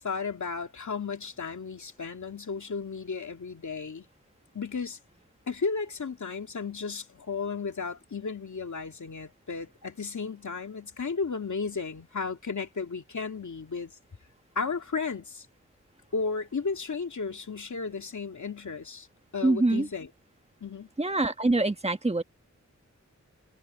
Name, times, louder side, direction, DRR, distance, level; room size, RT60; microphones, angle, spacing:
voice 1, 0.0-4.0 4.5-5.0 5.5-13.9 14.5-15.5 16.1-19.1 19.3-20.1 20.6-20.9, left 5 dB, 75° left, 2.6 m, -34 dB
voice 2, 19.4-19.9 21.0-22.2, right 2 dB, 20° right, 1.4 m, -24 dB
wide cardioid pair, 90°, 29 cm